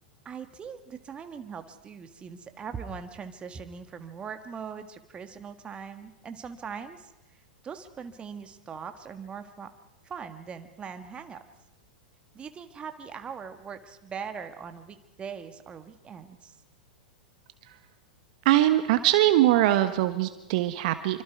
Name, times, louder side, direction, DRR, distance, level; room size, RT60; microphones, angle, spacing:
voice 1, 0.2-7.1 7.6-9.7 10.0-11.4 12.3-16.5, right 6 dB, 20° right, 8 dB, 1.7 m, -41 dB
voice 2, 18.4-21.2, right 14 dB, 55° right, 10 dB, 1.3 m, -22 dB
26.5 x 24.5 x 4.7 m, 0.96 s
figure-of-eight pair, 95°, 5 cm